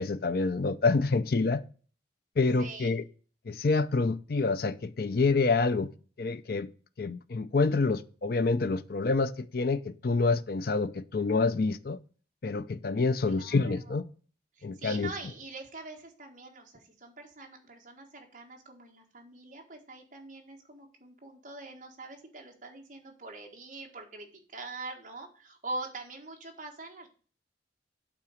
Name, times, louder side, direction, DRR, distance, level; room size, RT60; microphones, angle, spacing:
voice 1, 0.0-1.6 2.4-3.0 3.5-5.9 6.2-6.7 7.0-12.0 12.4-14.0 14.6-15.1, left 3 dB, 55° left, 0.5 m, -27 dB
voice 2, 2.6-2.9 13.3-14.0 14.5-27.1, right 2 dB, 45° right, 1.6 m, -44 dB
8.6 x 3.9 x 6.5 m
head